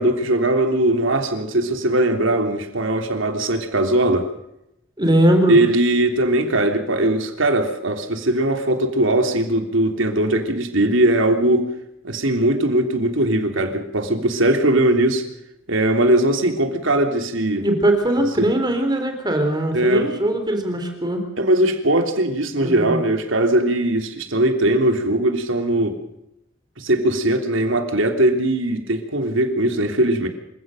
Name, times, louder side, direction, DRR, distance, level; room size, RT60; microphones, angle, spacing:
voice 1, 0.0-4.3 5.5-11.7 12.0-15.2 15.7-17.6 18.4-18.5 19.7-20.1 21.4-26.0 26.8-30.3, right 1 dB, 75° right, 5 dB, 3.3 m, -20 dB
voice 2, 5.0-5.6 17.6-21.2 22.6-23.0, right 1 dB, 20° right, 5 dB, 3.6 m, -20 dB
27.5 x 17.0 x 6.5 m, 0.83 s
head